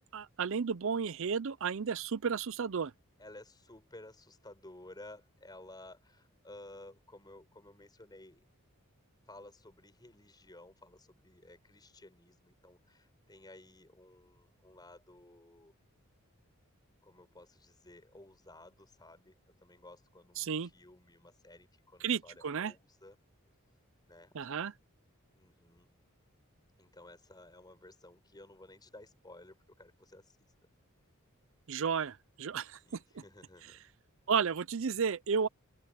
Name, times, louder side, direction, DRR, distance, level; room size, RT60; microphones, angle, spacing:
voice 1, 0.0-2.9 20.4-20.7 22.0-22.7 24.3-24.7 31.7-33.0 34.3-35.5, right 6 dB, 65° right, 0.6 m, -33 dB
voice 2, 3.2-8.4 9.3-15.7 17.0-23.2 24.1-24.3 25.3-25.9 26.8-30.5 32.8-33.8, left 1 dB, 20° left, 5.2 m, -55 dB
open air
head